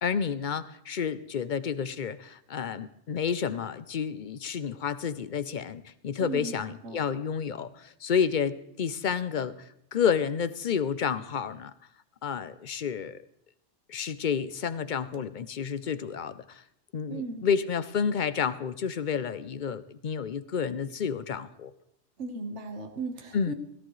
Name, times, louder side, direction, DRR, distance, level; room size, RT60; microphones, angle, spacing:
voice 1, 0.0-11.7 12.2-13.2 13.9-16.6 16.9-21.7 23.3-23.5, left 7 dB, 50° left, 13 dB, 0.6 m, -30 dB
voice 2, 6.2-6.6 6.8-7.0 17.1-17.5 22.2-23.5, right 4 dB, 85° right, 4 dB, 1.7 m, -36 dB
18.0 x 13.5 x 3.2 m, 0.77 s
omnidirectional pair, 1.2 m